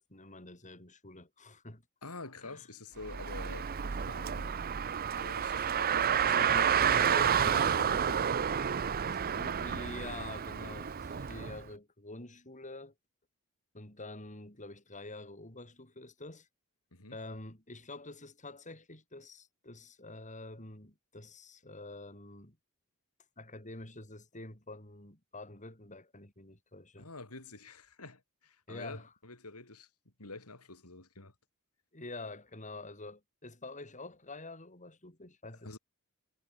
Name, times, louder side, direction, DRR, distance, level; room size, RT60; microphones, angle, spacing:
voice 1, 0.0-1.8 2.4-2.7 6.2-7.1 7.4-7.9 9.3-12.9 13.7-16.5 17.1-22.6 23.4-27.1 28.7-29.1 31.9-35.7, left 2 dB, 35° left, 7.8 m, -47 dB
voice 2, 2.0-4.5 5.2-6.7 7.0-8.3 16.9-17.2 27.0-29.9 30.2-31.3 35.6-35.8, left 3 dB, 85° left, 4.8 m, -47 dB
Car, 3.0-11.6, right 8 dB, 45° right, 0.6 m, -30 dB
head